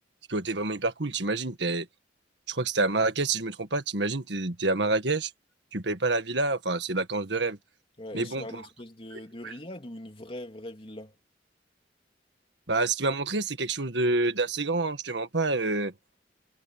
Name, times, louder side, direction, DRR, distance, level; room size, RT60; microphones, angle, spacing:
voice 1, 0.3-1.9 2.5-5.3 5.7-7.6 8.1-8.4 12.7-15.9, right 3 dB, 75° right, 1.7 m, -27 dB
voice 2, 8.0-11.1, left 1 dB, 30° left, 3.0 m, -41 dB
head